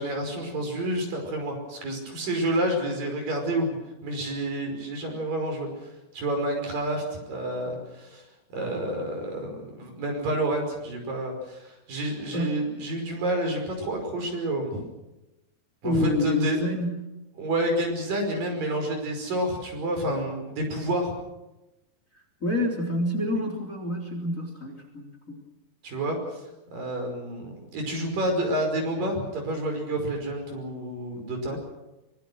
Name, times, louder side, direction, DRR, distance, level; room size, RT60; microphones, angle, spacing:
voice 1, 0.0-3.8 4.0-5.9 6.1-8.2 8.5-14.8 15.8-16.6 17.4-21.1 25.8-26.2 26.7-31.6, right 1 dB, 60° right, 3 dB, 7.0 m, -29 dB
voice 2, 15.8-17.1 22.4-25.4 31.5-31.6, left 1 dB, 20° left, 1 dB, 3.6 m, -28 dB
24.5 x 24.0 x 6.4 m, 0.99 s
omnidirectional pair, 4.4 m